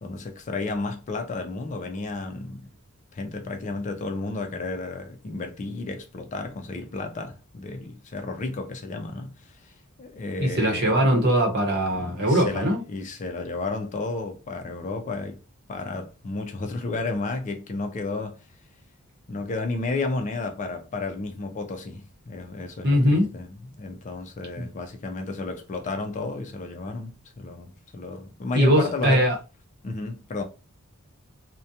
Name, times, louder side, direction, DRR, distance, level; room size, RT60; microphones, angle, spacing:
voice 1, 0.0-2.7 3.1-9.7 10.0-11.0 11.9-15.4 15.7-18.4 19.3-29.3 29.8-30.4, left 3 dB, 35° left, 0.4 m, -32 dB
voice 2, 10.4-12.8 22.8-23.3 24.6-24.7 28.6-29.3, equal, 50° right, 0.9 m, -21 dB
2.4 x 2.1 x 2.7 m
head